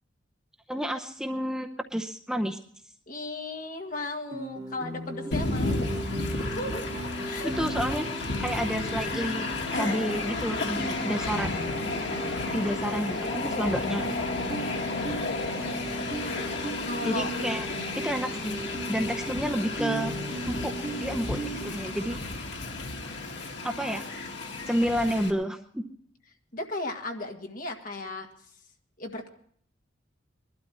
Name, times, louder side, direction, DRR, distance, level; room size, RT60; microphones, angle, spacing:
voice 1, 0.7-2.6 7.4-8.1 8.4-11.6 12.5-14.1 17.0-17.7 17.9-18.6 18.9-20.1 20.5-20.7 21.0-22.2 23.6-24.0 24.7-25.8, equal, 5° right, 3 dB, 0.7 m, -30 dB
voice 2, 3.1-6.9 7.2-7.5 14.5-15.1 16.8-17.3 26.5-28.3 29.0-29.3, left 2 dB, 45° left, 3 dB, 1.8 m, -36 dB
Guitar, 4.3-21.7, right 1 dB, 20° right, 2.0 m, -37 dB
Train, 5.3-25.3, left 3 dB, 65° left, 2.0 m, -32 dB
21.0 x 12.5 x 4.3 m, 0.63 s
head